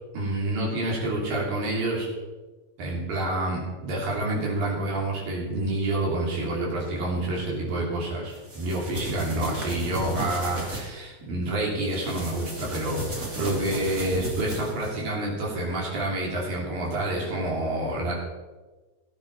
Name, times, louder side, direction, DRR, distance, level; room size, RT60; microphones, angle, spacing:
voice 1, 0.1-2.1 2.8-18.1, right 1 dB, 70° right, -3 dB, 4.9 m, -28 dB
sound 1, 8.3-10.8 11.8-15.0, right 1 dB, 25° right, 2.5 m, -34 dB
17.0 x 9.4 x 4.1 m, 1.3 s
omnidirectional pair, 4.2 m